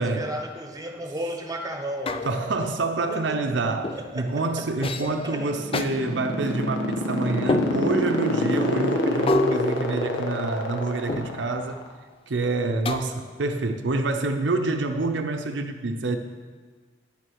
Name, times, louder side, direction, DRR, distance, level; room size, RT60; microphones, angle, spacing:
voice 1, 0.0-2.3 3.1-3.6 3.9-5.5, right 1 dB, 20° right, 3 dB, 1.1 m, -34 dB
sound 1, 2.1-2.7 3.8-4.2 4.8-5.2 5.7-5.9 7.5-8.1 9.3-10.6 11.1-11.6 12.9-13.4, left 2 dB, 30° left, 0.5 m, -28 dB
voice 2, 2.2-11.8 12.3-16.2, right 2 dB, 75° right, 6 dB, 0.7 m, -27 dB
sound 2, 5.4-11.9, left 1 dB, 85° left, 1.4 m, -26 dB
9.7 x 6.5 x 6.3 m, 1.5 s
head